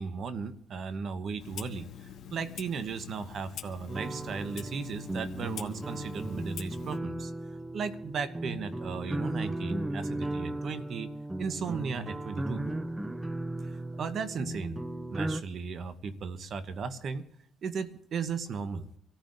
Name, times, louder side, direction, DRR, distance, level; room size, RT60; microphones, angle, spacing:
voice 1, 0.0-1.9 2.3-7.3 7.7-11.1 11.4-12.7 13.6-14.8 15.1-17.3 17.6-18.9, right 5 dB, 60° right, 11 dB, 0.9 m, -36 dB
Clock, 1.4-7.0, left 9 dB, 75° left, 1.1 m, -45 dB
sound 1, 3.9-15.4, right 1 dB, 15° right, 0.5 m, -36 dB
26.5 x 14.5 x 2.6 m, 0.74 s
cardioid pair, 90°, 0 cm